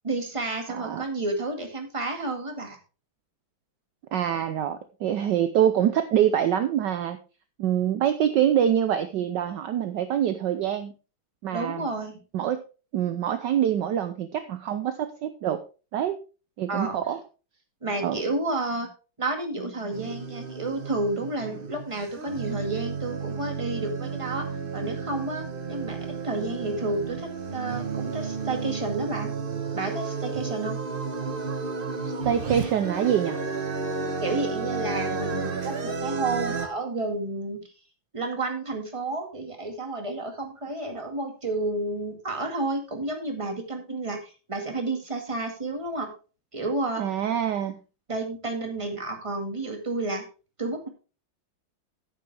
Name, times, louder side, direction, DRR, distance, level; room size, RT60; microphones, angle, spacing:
voice 1, 0.0-2.8 11.5-12.2 16.7-17.0 17.8-18.9 19.2-24.4 24.7-25.4 25.7-29.3 29.7-30.8 34.2-37.6 38.1-46.1 46.5-47.0 48.1-50.2 50.6-50.9, right 2 dB, 15° right, 4 dB, 1.9 m, -31 dB
voice 2, 0.7-1.0 4.1-7.2 7.6-10.9 11.4-11.9 12.3-12.6 12.9-15.6 15.9-16.2 16.6-17.2 18.0-18.2 32.0-33.4 47.0-47.7, right 10 dB, 65° right, 10 dB, 1.2 m, -25 dB
sound 1, 19.9-36.7, right 4 dB, 35° right, 1.0 m, -32 dB
11.0 x 9.1 x 3.4 m, 0.34 s
omnidirectional pair, 2.3 m